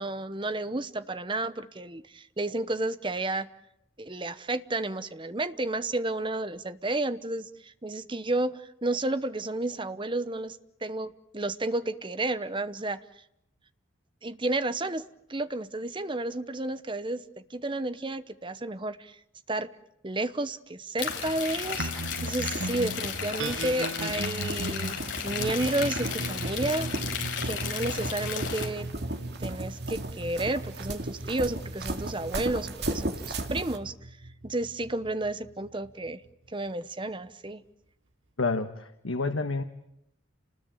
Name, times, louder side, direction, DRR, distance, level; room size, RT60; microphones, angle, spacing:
voice 1, 0.0-3.5 4.0-13.0 14.2-15.0 15.3-19.2 19.5-19.7 20.0-21.9 22.2-26.9 27.4-28.9 29.4-33.9 34.4-36.2 36.5-37.6, right 2 dB, 25° right, 13 dB, 0.9 m, -31 dB
sound 1, 21.0-28.7, left 6 dB, 65° left, 4.6 m, -34 dB
sound 2, 21.1-33.8, right 1 dB, 55° right, 2.3 m, -37 dB
sound 3, 21.8-36.5, right 2 dB, 70° right, 1.3 m, -38 dB
voice 2, 38.4-39.6, left 3 dB, 90° left, 7 dB, 1.4 m, -29 dB
29.5 x 20.0 x 9.1 m, 0.81 s
head